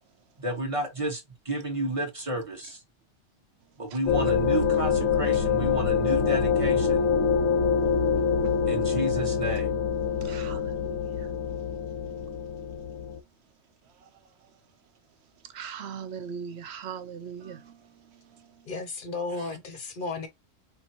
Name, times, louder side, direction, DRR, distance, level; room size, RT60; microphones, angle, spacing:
voice 1, 0.4-2.8 3.8-7.0 8.7-9.8, right 1 dB, 25° right, 1.0 m, -31 dB
sound 1, 4.1-13.2, left 6 dB, 80° left, 1.0 m, -25 dB
voice 2, 10.0-11.3 13.8-14.6 15.4-18.7 19.4-19.5, right 7 dB, 60° right, 0.9 m, -42 dB
voice 3, 18.7-20.3, left 3 dB, 50° left, 0.7 m, -34 dB
4.5 x 2.6 x 2.8 m
omnidirectional pair, 1.4 m